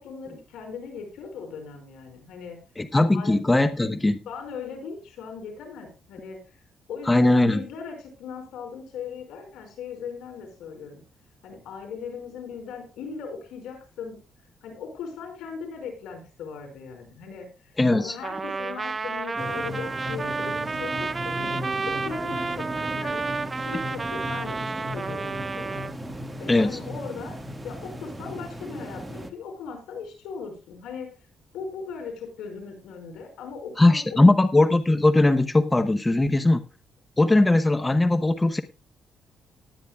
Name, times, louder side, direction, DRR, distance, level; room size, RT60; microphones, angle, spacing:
voice 1, 0.0-2.6 3.1-3.4 4.3-6.6 6.9-11.0 11.4-14.2 14.6-21.6 21.8-25.8 26.4-27.4 27.6-31.1 31.5-34.2, left 5 dB, 85° left, 4 dB, 5.1 m, -38 dB
voice 2, 2.8-4.2 7.1-7.6 17.8-18.2 26.5-26.8 33.8-36.6 37.2-38.6, left 2 dB, 15° left, 10 dB, 0.9 m, -19 dB
Trumpet, 18.2-25.9, right 4 dB, 30° right, 0.6 m, -31 dB
sound 1, 19.4-29.3, equal, 15° right, 1.7 m, -36 dB
19.5 x 9.4 x 2.3 m, 0.30 s
cardioid pair, 90°, 0 cm